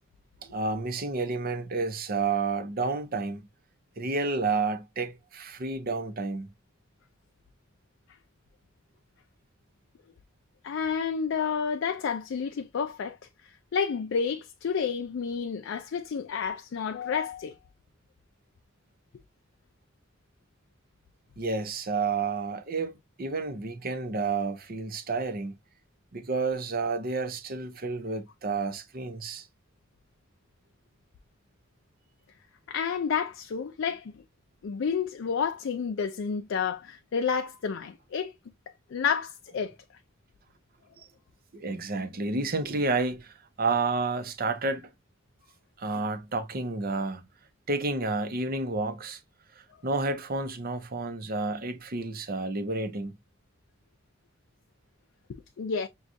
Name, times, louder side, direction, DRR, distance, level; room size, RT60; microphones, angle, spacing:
voice 1, 0.4-3.4 4.0-6.5 21.4-25.6 26.1-29.5 41.0-41.1 41.5-44.9 45.8-47.2 47.7-49.2 49.8-53.2, right 3 dB, 45° right, 0.6 m, -30 dB
voice 2, 10.6-13.2 13.4-17.6 32.7-34.2 34.6-38.3 38.9-39.8 55.6-55.9, left 6 dB, 65° left, 0.4 m, -30 dB
6.1 x 2.3 x 2.6 m
head